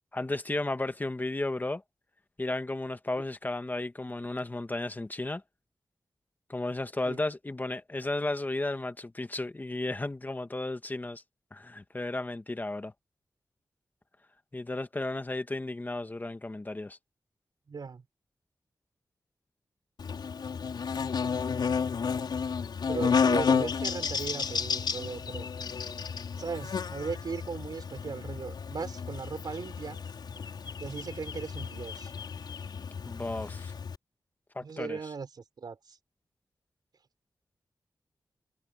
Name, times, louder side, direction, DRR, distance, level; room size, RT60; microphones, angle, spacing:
voice 1, 0.1-1.8 2.4-5.4 6.5-11.2 11.5-12.9 14.5-17.0 33.0-33.7 34.5-35.0, left 2 dB, 25° left, 1.5 m, -34 dB
voice 2, 17.7-18.0 22.8-25.5 26.3-30.0 30.8-32.1 34.6-36.0, right 5 dB, 70° right, 4.2 m, -38 dB
Buzz, 20.0-34.0, left 6 dB, 90° left, 5.3 m, -32 dB
wide cardioid pair, 95°, 7 cm